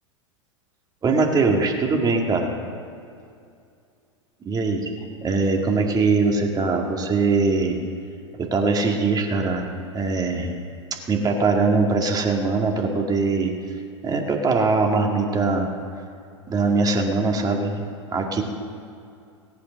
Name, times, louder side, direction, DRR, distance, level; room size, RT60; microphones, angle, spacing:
voice 1, 1.0-2.5 4.5-4.9 5.2-7.8 8.4-9.7 9.9-10.5 11.1-13.5 14.0-15.7 16.5-17.8 18.1-18.4, right 3 dB, 25° right, 2 dB, 2.1 m, -21 dB
17.0 x 8.4 x 6.4 m, 2.4 s
hypercardioid pair, 95°, 16 cm